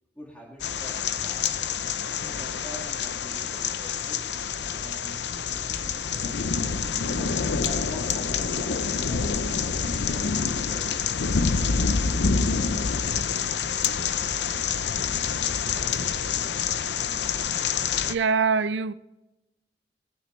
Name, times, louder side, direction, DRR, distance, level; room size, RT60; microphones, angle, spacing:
voice 1, 0.1-1.6 2.1-4.3 4.7-6.4 7.1-7.2 7.6-10.9 11.3-12.7, equal, 10° left, 1.8 m, -47 dB
sound 1, 0.6-18.1, left 6 dB, 75° left, 0.7 m, -27 dB
voice 2, 18.1-18.9, right 5 dB, 90° right, 0.5 m, -23 dB
19.5 x 10.5 x 3.2 m
head